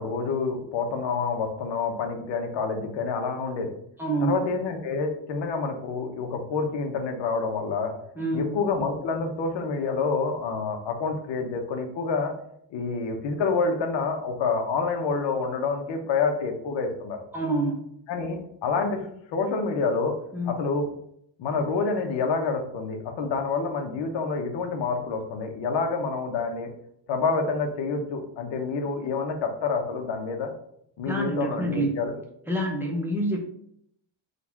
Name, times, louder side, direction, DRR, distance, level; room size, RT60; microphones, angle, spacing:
voice 1, 0.0-3.7 4.2-7.9 8.3-12.3 12.7-17.2 18.1-20.1 20.4-20.9 21.4-26.7 27.1-30.5 31.0-32.1, left 4 dB, 65° left, 4 dB, 0.9 m, -28 dB
voice 2, 4.0-4.4 8.2-8.5 17.3-17.8 20.3-20.6 31.1-32.0 32.5-33.4, right 1 dB, 5° right, -1 dB, 0.7 m, -27 dB
3.9 x 2.4 x 4.5 m, 0.72 s
cardioid pair, 155°, 47 cm